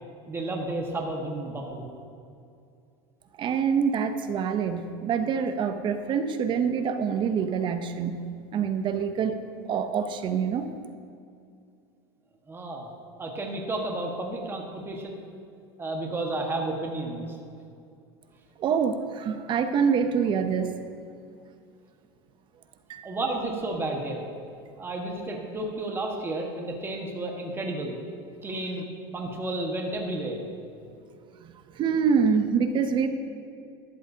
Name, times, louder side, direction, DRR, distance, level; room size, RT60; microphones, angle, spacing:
voice 1, 0.3-1.9 12.5-12.9 13.2-15.2 15.8-17.3 23.0-24.2 24.8-28.0 28.4-28.8 29.1-30.5, right 2 dB, 20° right, 1 dB, 1.5 m, -32 dB
voice 2, 3.4-8.2 8.5-9.4 9.7-10.7 18.6-20.7 22.9-23.1 31.4-33.1, right 6 dB, 40° right, 9 dB, 0.8 m, -26 dB
12.5 x 12.5 x 2.8 m, 2.4 s
supercardioid pair, 115°, 13 cm